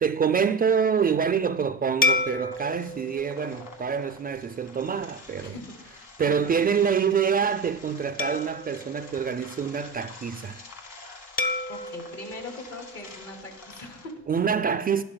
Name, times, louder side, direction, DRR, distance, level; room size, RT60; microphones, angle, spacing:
voice 1, 0.0-5.5 6.2-10.6 14.3-15.0, right 7 dB, 30° right, 0.4 m, -26 dB
sound 1, 2.0-4.7 5.3-5.5 8.2-10.0 11.4-13.7, left 3 dB, 30° left, 0.7 m, -31 dB
sound 2, 2.5-14.1, left 3 dB, 70° left, 1.8 m, -48 dB
voice 2, 5.4-6.6 11.7-14.2, left 2 dB, 55° left, 2.7 m, -41 dB
11.0 x 11.0 x 2.2 m
cardioid pair, 90°, 30 cm